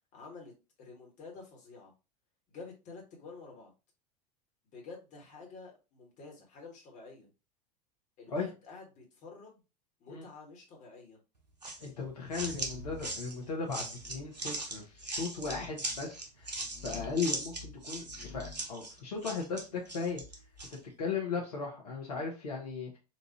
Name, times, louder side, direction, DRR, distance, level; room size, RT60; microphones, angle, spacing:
voice 1, 0.1-0.5 0.8-1.9 2.5-3.7 4.6-7.3 8.2-9.6 10.0-11.2, left 4 dB, 35° left, 0 dB, 1.5 m, -49 dB
sound 1, 11.6-20.8, right 2 dB, 85° right, 0.7 m, -40 dB
voice 2, 11.8-16.5 16.8-20.2 20.7-23.0, left 4 dB, 70° left, -2 dB, 1.1 m, -37 dB
sound 2, 12.2-13.2 13.9-14.3 15.3-15.7 16.6-17.3 18.0-18.7, left 6 dB, 5° right, 1.5 m, -49 dB
4.2 x 2.6 x 3.0 m, 0.30 s
figure-of-eight pair, 80°, 21 cm